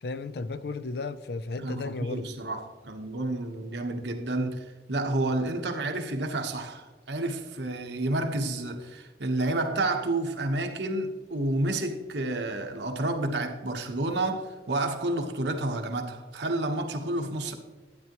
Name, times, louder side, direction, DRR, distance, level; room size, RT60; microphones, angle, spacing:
voice 1, 0.0-2.2, left 3 dB, 60° left, 0.5 m, -34 dB
voice 2, 1.6-17.5, right 2 dB, 75° right, 1.1 m, -30 dB
12.0 x 9.4 x 3.0 m
head